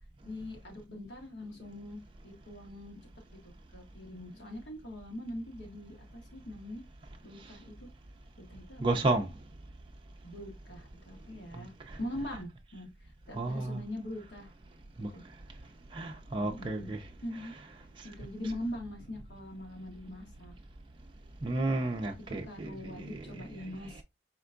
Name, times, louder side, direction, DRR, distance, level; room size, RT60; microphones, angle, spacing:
voice 1, 0.2-2.0 2.2-3.0 3.3-6.8 7.2-7.9 8.4-9.1 10.2-11.7 12.0-12.9 13.3-14.5 15.1-15.2 16.4-16.9 17.2-17.5 18.0-20.5 22.3-24.0, left 1 dB, 80° left, 1.6 m, -42 dB
voice 2, 8.8-9.3 11.6-12.0 13.3-13.8 15.0-15.1 15.9-17.0 21.4-23.4, right 2 dB, 25° right, 0.4 m, -32 dB
4.3 x 3.4 x 2.5 m
head